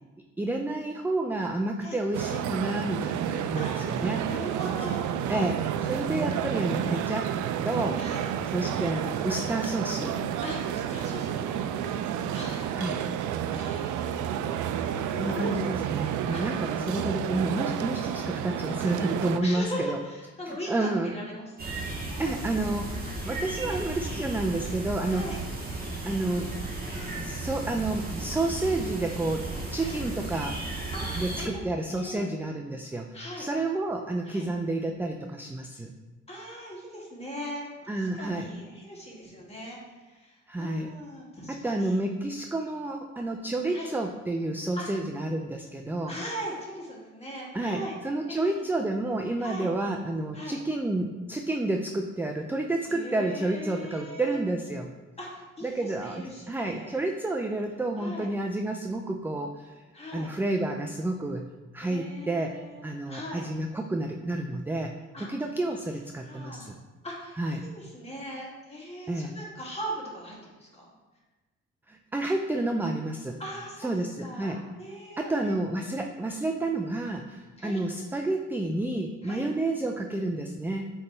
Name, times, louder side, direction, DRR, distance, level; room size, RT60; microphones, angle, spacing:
voice 1, 0.4-4.2 5.3-7.3 7.6-8.0 8.5-10.2 12.8-13.0 15.2-20.0 20.5-21.1 22.2-23.0 23.2-25.2 26.1-26.5 27.2-30.6 31.2-35.9 37.9-38.5 40.5-40.9 41.5-46.1 47.5-54.9 55.6-59.8 60.1-61.5 61.7-64.9 65.2-66.7 67.4-67.6 69.1-69.3 71.9-73.4 73.8-74.6 75.2-80.9, right 2 dB, 5° right, 3 dB, 0.4 m, -30 dB
sound 1, 2.1-19.4, right 9 dB, 75° right, 0.5 m, -30 dB
voice 2, 3.6-5.0 8.0-8.3 10.4-12.7 13.5-14.2 14.8-15.6 16.3-16.4 16.8-17.0 19.4-22.7 23.6-23.8 25.1-25.4 26.9-27.2 29.8-30.0 30.9-31.6 31.9-32.3 33.1-33.5 34.3-34.5 36.3-42.0 43.7-43.9 44.8-44.9 46.1-48.0 48.3-48.7 49.4-49.7 50.3-50.6 52.9-54.4 55.2-57.0 58.0-58.3 59.9-60.3 61.8-63.5 65.1-65.3 65.7-65.8 66.2-66.7 67.0-67.4 67.7-70.9 73.4-75.5 75.8-76.0 77.6-77.8 79.2-79.4, equal, 20° left, -3 dB, 2.0 m, -40 dB
sound 2, 21.6-31.5, right 2 dB, 30° right, 1.7 m, -35 dB
7.9 x 3.4 x 4.2 m, 1.2 s
cardioid pair, 90°, 30 cm